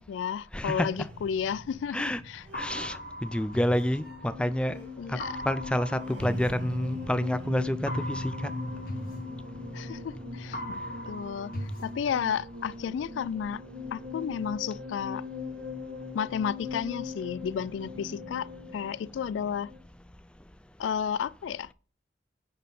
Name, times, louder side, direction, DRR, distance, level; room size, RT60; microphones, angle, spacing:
voice 1, 0.0-2.5 5.0-5.4 9.7-10.8 11.1-11.5 11.8-13.6 13.9-15.2 16.1-19.7 20.8-21.7, left 7 dB, 85° left, 0.3 m, -32 dB
voice 2, 0.5-0.9 1.9-2.2 2.5-5.2 5.4-8.5, left 1 dB, 5° left, 0.4 m, -29 dB
sound 1, 0.9-19.8, left 3 dB, 90° right, 2.2 m, -40 dB
sound 2, 2.5-4.6 5.2-7.3 7.9-10.2 10.5-12.6, equal, 50° left, 1.2 m, -39 dB
9.4 x 4.3 x 5.3 m
head